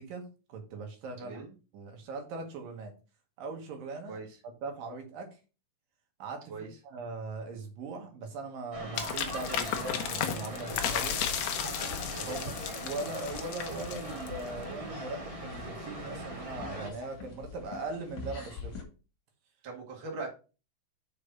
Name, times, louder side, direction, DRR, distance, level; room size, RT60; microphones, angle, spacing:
voice 1, 0.0-1.4 1.7-2.9 3.4-5.4 6.2-11.2 12.1-12.4 12.8-18.7, right 3 dB, 80° right, 4 dB, 3.0 m, -40 dB
voice 2, 1.2-1.5 4.1-4.3 6.5-6.7 12.1-12.5 19.6-20.3, right 3 dB, 40° right, 0 dB, 2.4 m, -40 dB
sound 1, 8.7-16.9, equal, 25° right, 0.7 m, -40 dB
sound 2, 9.0-14.5, left 8 dB, 70° left, 1.7 m, -34 dB
Sonicsnaps Elouan Gabin Yaël, 11.9-18.8, left 4 dB, 45° left, 2.0 m, -46 dB
5.9 x 5.1 x 5.5 m, 0.33 s
omnidirectional pair, 4.0 m